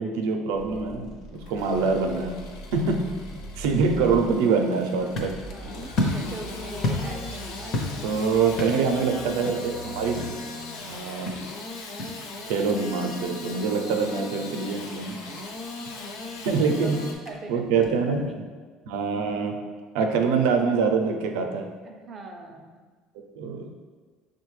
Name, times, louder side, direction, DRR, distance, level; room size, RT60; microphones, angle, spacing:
voice 1, 0.0-2.3 2.7-3.0 3.6-5.3 8.0-10.2 10.9-11.4 12.4-15.2 16.5-17.0 17.5-18.3 18.9-19.6 19.9-21.7 23.4-23.7, right 5 dB, 90° right, 4 dB, 0.4 m, -24 dB
sound 1, 0.5-11.4, equal, 60° left, 1.1 m, -42 dB
Engine starting / Sawing, 1.3-17.1, left 3 dB, 80° left, 0.5 m, -39 dB
sound 2, 4.8-18.3, left 2 dB, 35° left, 0.5 m, -35 dB
voice 2, 5.4-8.0 9.0-9.6 15.8-17.0 17.3-17.9 18.3-18.4 21.8-22.7, right 2 dB, 25° right, 3 dB, 0.4 m, -42 dB
6.1 x 2.2 x 3.1 m, 1.5 s
cardioid pair, 165°, 0 cm